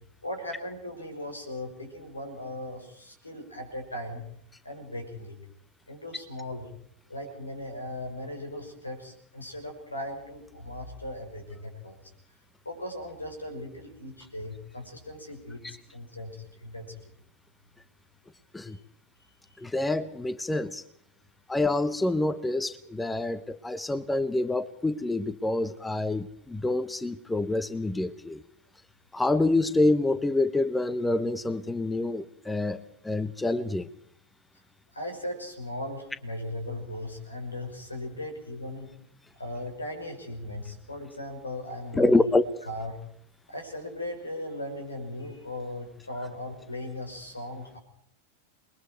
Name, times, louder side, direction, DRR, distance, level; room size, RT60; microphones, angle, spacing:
voice 1, 0.2-4.2 4.6-5.3 5.9-6.6 7.1-12.0 12.6-15.6 15.9-16.9 34.9-38.9 39.4-42.3 42.7-43.0 43.5-47.8, left 1 dB, 80° left, 6.0 m, -38 dB
voice 2, 19.6-20.8 21.5-28.4 29.1-33.9 41.9-42.4, left 2 dB, 10° left, 0.9 m, -27 dB
28.5 x 21.5 x 4.6 m
figure-of-eight pair, 90°, 0 cm